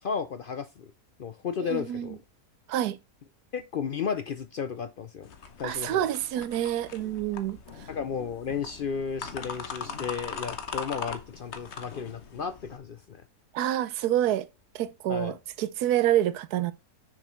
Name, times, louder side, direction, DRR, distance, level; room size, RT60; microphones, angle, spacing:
voice 1, 0.0-0.9 1.2-2.2 3.5-5.3 5.6-6.1 7.9-13.2 15.1-15.4, left 6 dB, 70° left, 0.5 m, -33 dB
voice 2, 1.6-2.2 2.7-3.0 5.6-7.6 13.5-14.5 14.7-16.7, right 12 dB, 90° right, 1.2 m, -27 dB
sound 1, 5.2-12.8, left 5 dB, 50° left, 1.2 m, -40 dB
6.6 x 6.3 x 4.4 m
omnidirectional pair, 1.6 m